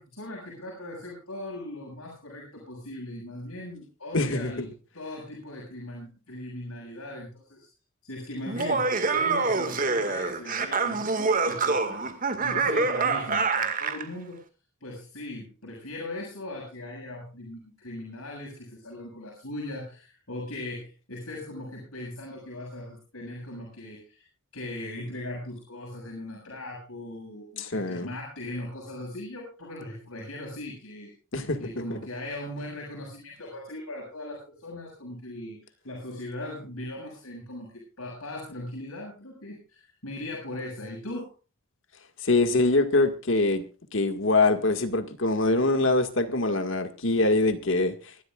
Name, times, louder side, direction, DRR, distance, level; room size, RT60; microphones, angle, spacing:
voice 1, 0.0-7.7 8.0-12.1 12.3-14.4 14.8-24.2 24.5-31.1 31.6-41.3, left 1 dB, 90° left, 7.1 m, -39 dB
voice 2, 4.1-4.6 27.6-28.1 31.3-31.6 31.9-32.0 42.2-43.6 43.9-48.0, left 2 dB, 60° left, 1.9 m, -24 dB
Laughter, 8.5-14.0, right 4 dB, 40° right, 2.0 m, -26 dB
24.5 x 12.5 x 2.5 m
head